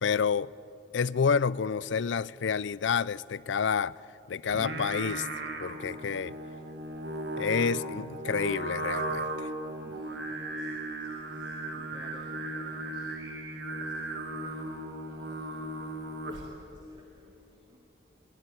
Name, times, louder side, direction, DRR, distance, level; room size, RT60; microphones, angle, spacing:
voice 1, 0.0-0.5 0.9-4.0 4.3-5.3 5.6-6.4 7.4-9.5, left 6 dB, 85° left, 0.5 m, -29 dB
Singing, 4.5-16.6, right 2 dB, 70° right, 2.3 m, -36 dB
voice 2, 9.8-10.7 11.0-13.1 13.7-17.8, right 1 dB, 25° right, 2.3 m, -58 dB
24.0 x 19.5 x 9.2 m
head